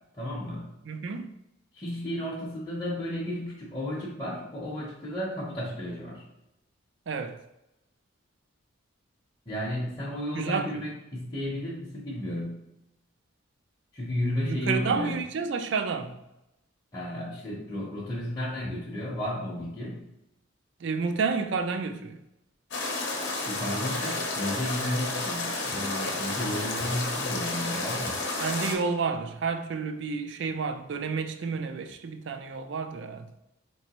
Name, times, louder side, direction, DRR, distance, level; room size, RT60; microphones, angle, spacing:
voice 1, 0.1-0.7 1.7-6.2 9.5-12.6 13.9-15.3 16.9-20.0 23.5-28.2, left 1 dB, 20° left, 0.7 m, -33 dB
voice 2, 0.9-1.3 7.1-7.4 10.3-10.8 14.4-16.2 20.8-22.2 28.4-33.3, right 5 dB, 60° right, 0.4 m, -30 dB
sound 1, 22.7-28.8, left 2 dB, 60° left, 0.8 m, -31 dB
4.3 x 3.0 x 2.9 m
head